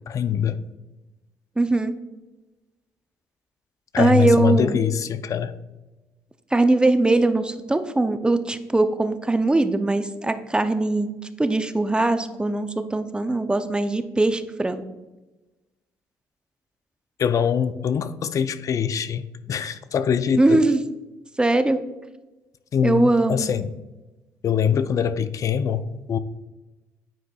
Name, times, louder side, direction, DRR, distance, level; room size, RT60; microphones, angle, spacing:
voice 1, 0.1-0.7 3.9-5.5 17.2-20.6 22.7-23.8 24.4-26.2, left 8 dB, 50° left, 13 dB, 0.5 m, -23 dB
voice 2, 1.6-1.9 4.0-4.8 6.5-11.1 11.4-14.8 20.4-20.8 21.4-21.8 22.8-23.6, right 2 dB, 15° right, 10 dB, 0.5 m, -21 dB
9.1 x 4.7 x 2.3 m, 1.1 s
supercardioid pair, 70°, 7 cm